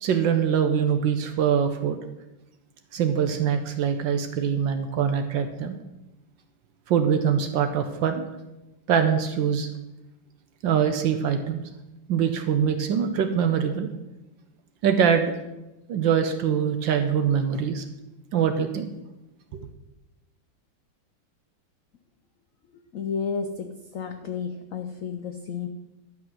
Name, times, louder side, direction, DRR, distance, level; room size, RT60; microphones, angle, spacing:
voice 1, 0.0-2.0 2.9-5.8 6.9-8.2 8.9-9.7 10.6-11.7 12.1-13.9 14.8-15.4 15.9-17.8 18.3-18.9 19.5-19.7, right 7 dB, 70° right, 7 dB, 1.4 m, -23 dB
voice 2, 22.9-25.7, left 6 dB, 90° left, 7 dB, 0.7 m, -32 dB
11.5 x 6.0 x 6.1 m, 0.96 s
omnidirectional pair, 2.3 m